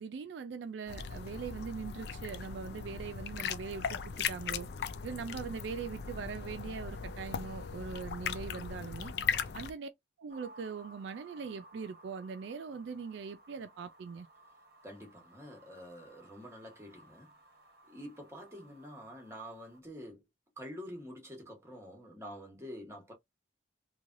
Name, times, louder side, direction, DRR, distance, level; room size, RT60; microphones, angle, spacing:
voice 1, 0.0-4.7 5.0-9.1 9.5-9.9 10.2-14.3, right 5 dB, 70° right, 0.3 m, -41 dB
sound 1, 0.9-9.7, left 6 dB, 55° left, 0.3 m, -38 dB
sound 2, 10.3-19.8, right 1 dB, 55° right, 0.7 m, -58 dB
voice 2, 14.8-17.3 17.9-20.2 20.6-23.1, equal, 15° right, 1.0 m, -47 dB
3.1 x 2.2 x 2.5 m
head